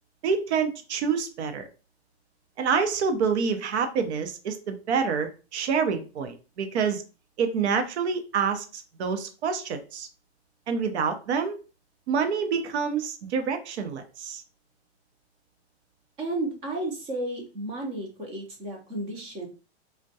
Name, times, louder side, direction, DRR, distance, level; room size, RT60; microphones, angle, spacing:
voice 1, 0.2-1.6 2.6-7.0 7.4-10.1 10.7-11.6 12.1-14.4, right 6 dB, 80° right, 8 dB, 0.7 m, -27 dB
voice 2, 16.2-19.5, right 1 dB, 15° right, 1 dB, 0.4 m, -33 dB
3.4 x 2.2 x 2.6 m, 0.34 s
supercardioid pair, 160°, 33 cm